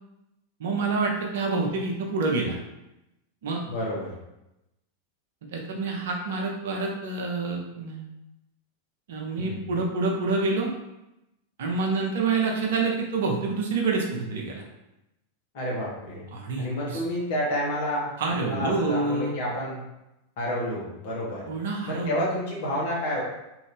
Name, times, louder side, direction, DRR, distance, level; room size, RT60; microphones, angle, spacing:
voice 1, 0.6-2.6 3.4-3.6 5.5-8.0 9.1-10.7 11.6-14.6 16.3-17.0 18.2-19.3 21.5-22.3, right 3 dB, 60° right, 0 dB, 0.6 m, -27 dB
voice 2, 3.7-4.1 9.4-9.7 15.5-16.2 16.6-18.1 18.4-19.8 20.4-21.5 21.9-23.2, equal, 50° left, -4 dB, 1.2 m, -29 dB
3.0 x 2.6 x 3.3 m, 0.91 s
figure-of-eight pair, 90°, 0 cm